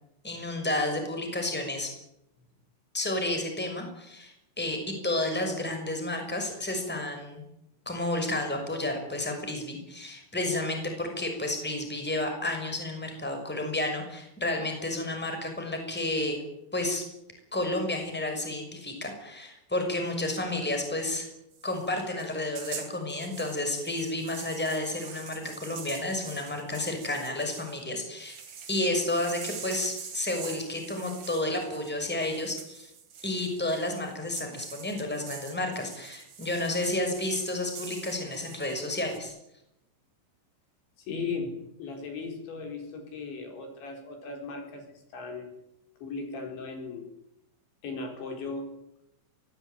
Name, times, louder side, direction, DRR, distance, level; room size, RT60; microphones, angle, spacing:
voice 1, 0.2-1.9 2.9-7.4 7.9-16.4 16.7-17.0 17.5-21.3 21.6-28.4 28.7-32.9 33.2-39.3, left 1 dB, ahead, 4 dB, 5.6 m, -31 dB
sound 1, 21.5-27.8 28.2-39.2, right 7 dB, 50° right, 4.9 m, -44 dB
voice 2, 41.0-41.5 41.8-44.8 45.1-45.5 46.0-47.0 47.8-48.6, left 4 dB, 65° left, 4 dB, 6.4 m, -37 dB
24.0 x 19.5 x 9.3 m, 0.83 s
omnidirectional pair, 5.7 m